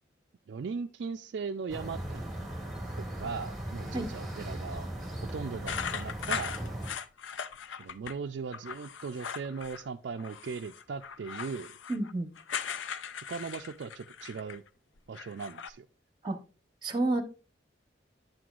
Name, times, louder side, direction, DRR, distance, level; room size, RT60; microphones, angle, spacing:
voice 1, 0.5-2.2 3.0-4.9 5.3-6.5 7.8-11.8 13.3-14.6 15.1-15.9, right 5 dB, 65° right, 4 dB, 0.4 m, -38 dB
sound 1, 1.7-6.9, right 1 dB, ahead, 1.8 m, -38 dB
sound 2, 5.7-8.1 8.5-9.9 10.2-14.7 15.0-15.7, left 7 dB, 80° left, 0.5 m, -39 dB
voice 2, 11.9-12.3 16.2-16.4 16.8-17.2, right 2 dB, 25° right, 7 dB, 0.9 m, -29 dB
8.9 x 7.7 x 2.4 m, 0.32 s
head